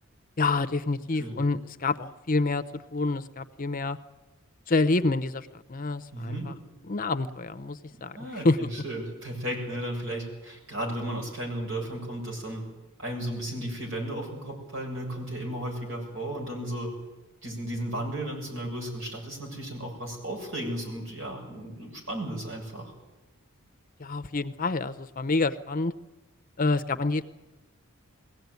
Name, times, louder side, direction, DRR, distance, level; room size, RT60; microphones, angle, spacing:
voice 1, 0.4-4.0 4.7-6.5 6.9-8.2 8.4-8.7 24.0-25.9 26.6-27.2, left 3 dB, 40° left, 12 dB, 0.7 m, -27 dB
voice 2, 6.1-6.5 8.2-12.6 13.0-16.9 17.4-22.9, right 1 dB, 60° right, 0 dB, 6.9 m, -34 dB
21.5 x 17.0 x 9.5 m, 1.1 s
head